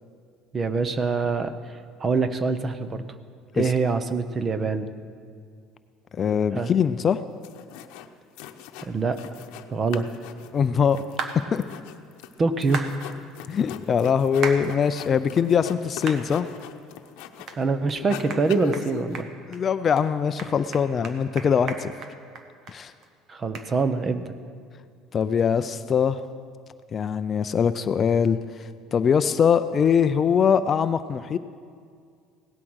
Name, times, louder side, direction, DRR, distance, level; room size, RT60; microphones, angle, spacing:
voice 1, 0.5-1.5 2.0-3.0 3.5-4.9 6.5-6.7 8.8-9.2 9.7-10.1 12.4-13.0 17.6-19.3 23.3-24.3, right 4 dB, 25° right, 12 dB, 0.7 m, -25 dB
voice 2, 6.2-7.2 10.5-11.0 11.5-11.6 13.5-16.5 19.5-21.9 22.7-22.9 25.1-26.2 26.9-31.4, left 7 dB, 30° left, 12 dB, 0.4 m, -22 dB
sound 1, 7.1-7.2 7.4-8.1 8.4-9.7 9.9-17.6 17.9-19.2, left 10 dB, 80° left, 0.8 m, -40 dB
sound 2, 11.2-11.4 12.7-12.9 14.4-14.6 15.1-15.2 16.1-16.2 16.7-16.8 17.5-17.6 17.9-18.0 18.3-18.4 18.7-18.9 19.1-19.6 20.0-20.1 20.4-22.8 23.0-23.1 23.5-23.7, right 5 dB, 45° right, 1.3 m, -33 dB
17.0 x 12.5 x 6.3 m, 2.2 s
cardioid pair, 150°, 0 cm